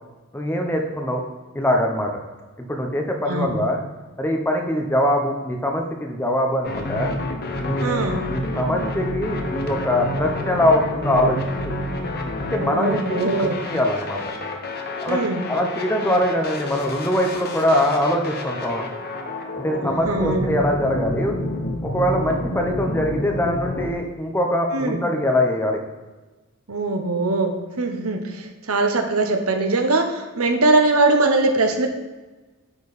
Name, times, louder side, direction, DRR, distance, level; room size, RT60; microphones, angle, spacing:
voice 1, 0.3-1.2 1.5-2.1 2.6-3.8 4.2-7.1 7.6-7.9 8.3-11.4 11.6-11.7 12.4-14.2 15.0-15.2 15.5-18.9 19.6-21.4 21.8-25.8, left 1 dB, 10° left, 2 dB, 0.8 m, -22 dB
voice 2, 3.3-3.7 7.8-8.2 12.6-13.6 15.1-15.4 20.0-20.5 24.7-25.0 26.7-31.9, right 2 dB, 80° right, 5 dB, 1.0 m, -21 dB
sound 1, 6.6-23.9, left 1 dB, 45° left, 0.9 m, -29 dB
9.8 x 4.6 x 4.1 m, 1.2 s
head